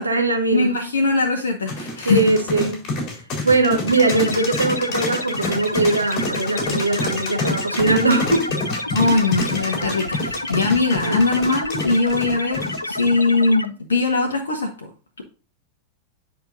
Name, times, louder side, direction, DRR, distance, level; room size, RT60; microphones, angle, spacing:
voice 1, 0.0-0.8 2.0-2.9 3.4-8.5 9.0-9.1 11.0-11.2, right 2 dB, 80° right, 1.4 m, -20 dB
voice 2, 0.5-2.2 8.9-14.9, left 3 dB, 70° left, 1.2 m, -21 dB
sound 1, 1.7-13.1, left 2 dB, 35° left, 4.2 m, -27 dB
sound 2, 3.9-13.7, left 1 dB, 85° left, 0.5 m, -29 dB
10.5 x 5.4 x 2.6 m
figure-of-eight pair, 90°, 0 cm